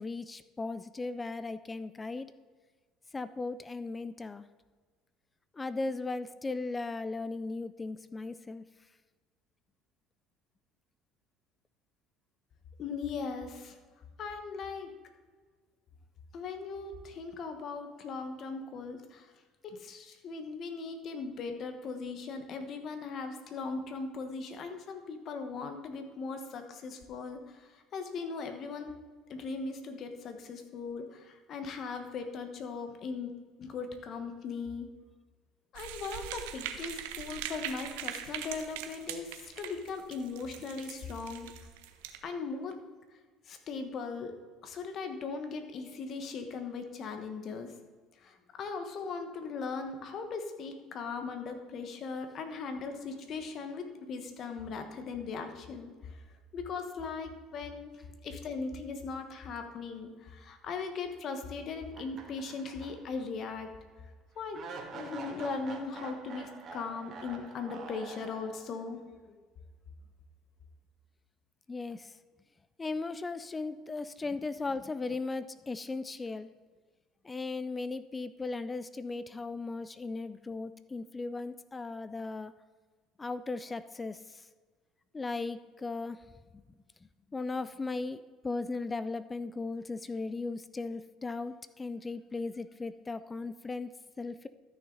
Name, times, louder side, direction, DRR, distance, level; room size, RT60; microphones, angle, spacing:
voice 1, 0.0-2.3 3.1-4.5 5.5-8.6 71.7-72.1 72.8-76.5 77.2-82.5 83.2-84.4 85.1-86.2 86.5-86.6 87.3-94.5, left 3 dB, 20° left, 14 dB, 0.4 m, -37 dB
voice 2, 12.8-13.7 14.2-14.9 16.3-19.3 19.6-27.4 27.9-28.9 29.3-33.3 33.6-34.9 35.7-39.3 39.6-41.5 42.2-42.8 43.5-44.3 44.6-47.7 48.2-55.9 56.5-57.9 58.2-63.7 64.4-64.6 64.9-69.0 69.3-69.4, left 4 dB, 50° left, 6 dB, 1.4 m, -39 dB
sound 1, 35.7-42.2, right 10 dB, 90° right, 0.8 m, -41 dB
sound 2, 61.9-63.2 63.6-63.7 64.5-68.8, right 4 dB, 45° right, 1.9 m, -46 dB
13.0 x 6.4 x 4.0 m, 1.5 s
supercardioid pair, 100°, 0 cm